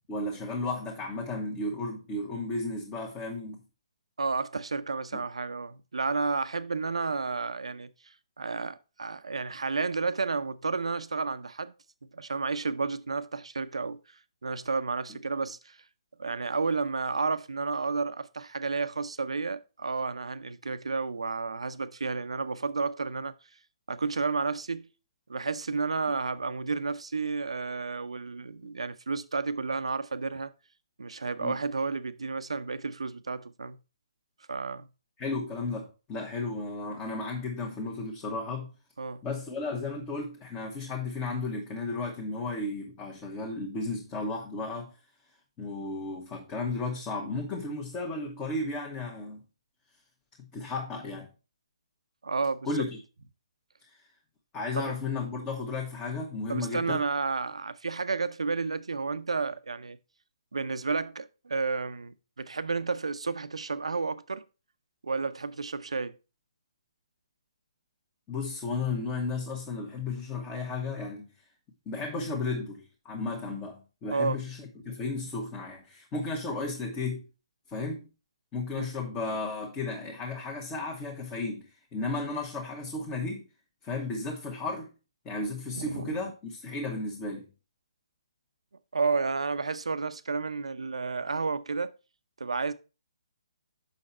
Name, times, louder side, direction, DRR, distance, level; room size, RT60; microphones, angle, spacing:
voice 1, 0.1-3.6 5.1-5.2 31.4-31.5 35.2-38.7 39.2-44.9 45.6-49.4 50.4-51.3 52.6-53.0 53.8-54.0 54.5-57.0 68.3-71.3 71.9-77.2 77.7-78.1 78.5-81.6 81.9-83.4 83.8-84.9 85.2-87.5, left 3 dB, 20° left, 1.3 m, -34 dB
voice 2, 4.2-7.9 8.4-11.7 12.1-14.0 14.4-15.8 16.2-23.3 23.9-24.9 25.3-30.5 31.0-33.8 34.5-34.9 39.0-39.2 52.2-52.7 54.8-54.9 56.5-60.0 60.5-64.4 65.0-66.1 74.1-74.4 78.8-78.9 85.7-86.1 88.9-91.9 92.4-92.7, right 4 dB, 85° right, 0.7 m, -31 dB
6.6 x 5.8 x 4.2 m
hypercardioid pair, 150°, 3 cm